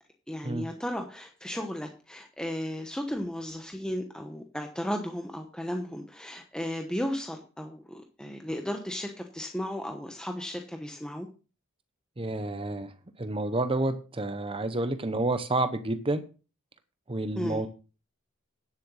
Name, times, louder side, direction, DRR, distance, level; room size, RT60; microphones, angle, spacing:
voice 1, 0.3-11.3 17.4-17.7, equal, 5° left, 4 dB, 1.0 m, -35 dB
voice 2, 12.2-12.9 13.2-16.2 17.1-17.7, right 2 dB, 25° right, 11 dB, 0.8 m, -29 dB
10.0 x 7.8 x 6.3 m, 0.35 s
head